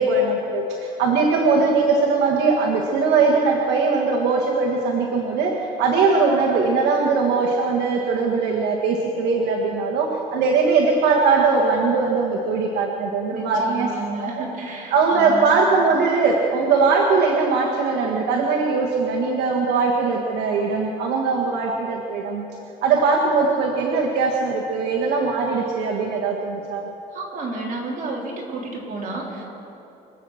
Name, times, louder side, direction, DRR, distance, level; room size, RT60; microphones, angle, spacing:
voice 1, 0.0-5.5 5.8-14.4 14.9-22.5 22.8-26.9, right 4 dB, 80° right, -1 dB, 1.7 m, -20 dB
voice 2, 13.3-15.7 27.1-29.4, right 2 dB, 50° right, -2 dB, 3.8 m, -31 dB
25.5 x 8.6 x 6.5 m, 2.9 s
cardioid pair, 110°, 17 cm